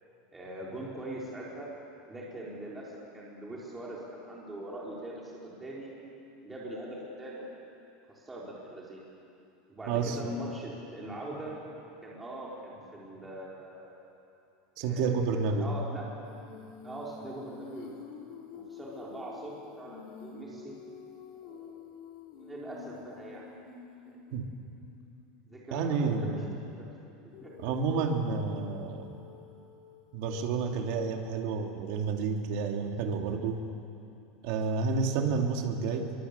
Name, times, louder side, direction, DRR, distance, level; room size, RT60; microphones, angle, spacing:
voice 1, 0.3-1.7 2.1-5.9 6.4-7.5 8.2-9.1 9.7-11.5 12.0-13.9 14.8-16.0 16.8-17.9 18.5-20.8 21.4-21.7 22.3-23.4 25.5-26.4 26.7-26.9 27.4-27.5, right 1 dB, 10° right, -5 dB, 4.0 m, -42 dB
voice 2, 9.9-10.2 14.8-15.7 24.3-24.4 25.7-26.4 27.6-29.1 30.1-33.6 34.4-36.1, right 5 dB, 50° right, 3 dB, 2.5 m, -30 dB
Female singing, 16.2-25.1 27.3-31.5, left 6 dB, 55° left, 3.8 m, -49 dB
23.5 x 23.5 x 8.2 m, 2.7 s
supercardioid pair, 175°, 0 cm